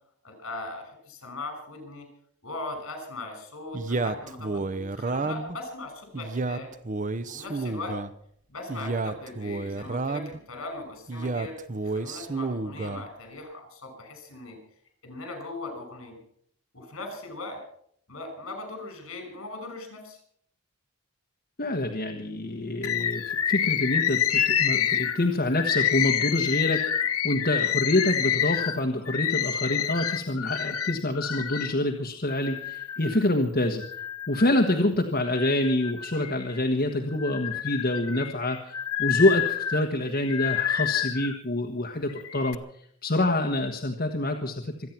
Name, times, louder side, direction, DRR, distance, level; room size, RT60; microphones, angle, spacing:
voice 1, 0.2-2.1 2.4-6.7 7.3-8.0 8.5-11.6 11.8-14.6 15.0-16.2 16.7-17.6 18.1-20.2, left 2 dB, 70° left, 5 dB, 6.0 m, -39 dB
Male speech man speaking, 3.7-5.6 6.1-8.1 8.7-10.4 11.1-13.1, right 3 dB, 35° right, 0.7 m, -31 dB
voice 2, 21.6-33.8 34.3-38.6 39.0-42.6 43.0-44.9, left 1 dB, 45° left, 3 dB, 1.4 m, -26 dB
Bird, 22.8-31.7 32.3-33.3 33.8-34.8 35.2-36.6 37.1-41.4 42.1-42.6, left 9 dB, 90° left, 0.9 m, -28 dB
26.0 x 9.4 x 5.9 m, 0.64 s
head